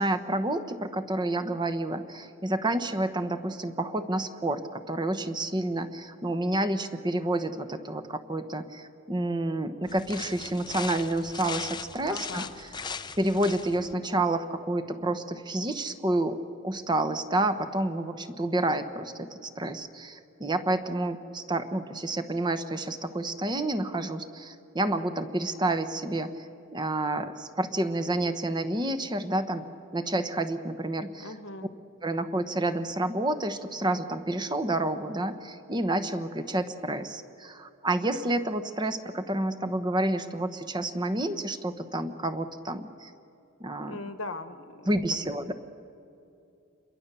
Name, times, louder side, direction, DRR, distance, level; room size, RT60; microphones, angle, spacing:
voice 1, 0.0-12.5 13.2-16.4 16.6-29.6 29.9-31.3 32.0-43.1 43.6-44.0 44.9-45.5, right 1 dB, 20° right, 10 dB, 1.1 m, -29 dB
sound 1, 9.8-13.9, left 5 dB, 20° left, 0.6 m, -39 dB
voice 2, 12.1-12.5 31.2-31.7 43.8-44.9 45.3-45.4, left 2 dB, 70° left, 10 dB, 1.3 m, -39 dB
29.0 x 22.5 x 6.9 m, 2.6 s
head